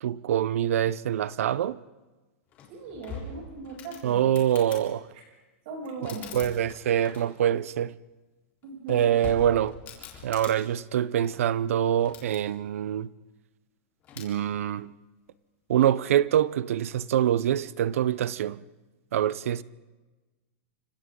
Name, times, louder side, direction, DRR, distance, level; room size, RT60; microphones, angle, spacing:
voice 1, 0.0-1.8 4.0-5.1 6.3-7.9 8.9-9.8 10.2-13.1 14.2-14.9 15.7-18.6 19.1-19.6, right 10 dB, 80° right, 0.7 m, -25 dB
sound 1, 2.5-4.9 5.8-7.5 8.6-10.5 11.9-12.4 14.0-14.3, left 5 dB, 25° left, 4.0 m, -43 dB
voice 2, 2.7-4.2 5.7-6.3 8.6-9.0, right 3 dB, 45° right, 7.5 m, -39 dB
30.0 x 25.5 x 3.9 m
supercardioid pair, 170°, 7 cm